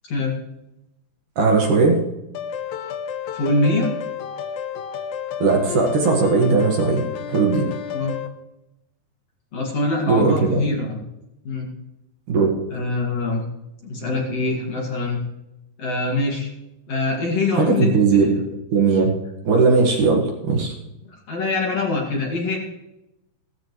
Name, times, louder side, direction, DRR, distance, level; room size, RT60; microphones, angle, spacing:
voice 1, 1.4-2.0 5.4-7.7 10.1-10.6 12.3-12.5 17.5-18.3 18.7-19.1 19.4-20.7, right 4 dB, 60° right, 0 dB, 2.7 m, -18 dB
sound 1, 2.3-8.3, left 8 dB, 75° left, 1.7 m, -30 dB
voice 2, 3.3-3.9 7.9-8.2 9.5-11.0 11.4-11.7 12.7-13.4 13.8-15.2 15.8-16.5 16.9-18.3 21.3-22.6, left 2 dB, 45° left, -1 dB, 2.8 m, -23 dB
16.5 x 14.5 x 3.2 m, 0.91 s
omnidirectional pair, 4.6 m